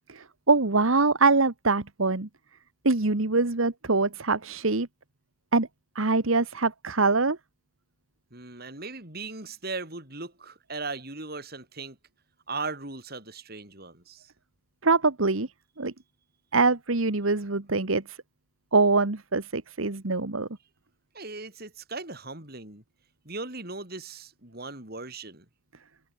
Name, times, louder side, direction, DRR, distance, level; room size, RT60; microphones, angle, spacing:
voice 1, 0.1-2.3 2.8-4.9 5.5-5.7 5.9-7.4 14.8-15.5 15.8-15.9 16.5-18.0 18.7-20.5, right 3 dB, 80° right, 1.6 m, -24 dB
voice 2, 8.3-12.0 12.5-14.3 21.1-22.8 23.2-25.4, right 3 dB, 50° right, 5.0 m, -38 dB
head